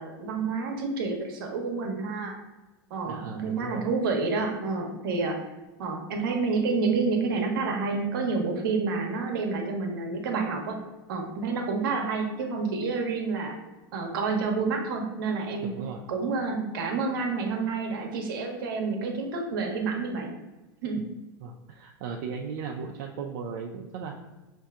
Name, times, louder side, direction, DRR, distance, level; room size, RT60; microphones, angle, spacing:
voice 1, 0.0-2.3 2.9-5.4 5.8-10.8 11.1-13.5 13.9-15.7 16.1-20.3 20.8-21.0, right 4 dB, 80° right, 2 dB, 0.9 m, -29 dB
voice 2, 3.0-3.9 15.7-16.0 21.4-24.1, right 6 dB, 60° right, 0 dB, 0.4 m, -37 dB
5.5 x 2.6 x 2.4 m, 1.1 s
supercardioid pair, 120°, 12 cm